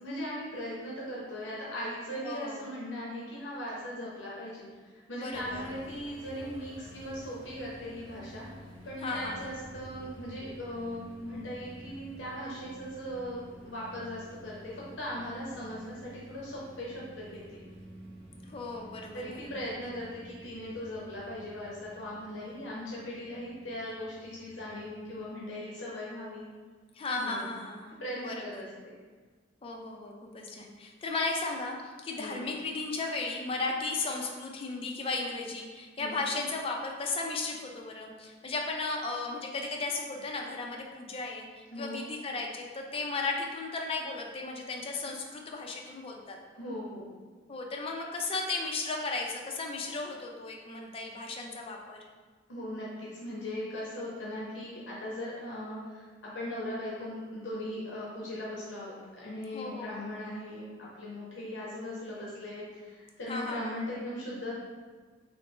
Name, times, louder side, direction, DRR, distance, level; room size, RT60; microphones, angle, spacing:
voice 1, 0.0-8.4 8.8-17.6 19.1-26.5 27.2-27.5 28.0-28.7 32.2-32.4 36.0-36.2 41.7-42.0 46.5-47.1 52.5-64.5, left 1 dB, 70° left, -6 dB, 0.7 m, -39 dB
voice 2, 2.2-2.6 5.1-5.7 9.0-9.4 18.4-19.4 26.9-27.9 28.2-28.7 29.6-46.4 47.5-52.0 59.5-60.1 63.3-63.8, left 3 dB, 30° left, 1 dB, 0.4 m, -35 dB
sound 1, 5.3-25.2, equal, 25° right, 1.3 m, -50 dB
3.2 x 3.1 x 3.1 m, 1.4 s
head